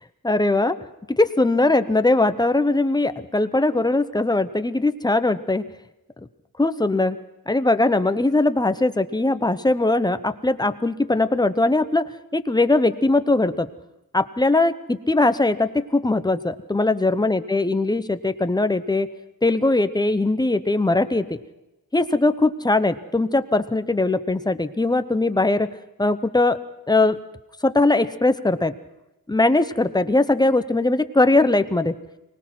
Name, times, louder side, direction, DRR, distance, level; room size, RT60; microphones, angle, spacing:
voice 1, 0.2-0.8 1.1-5.7 6.6-7.2 7.5-12.0 12.3-13.7 14.1-19.1 19.4-21.4 21.9-25.7 26.0-26.6 26.9-27.2 27.6-28.7 29.3-32.0, left 2 dB, 10° left, 11 dB, 0.8 m, -20 dB
24.0 x 19.0 x 6.0 m, 0.97 s
wide cardioid pair, 130°, 36 cm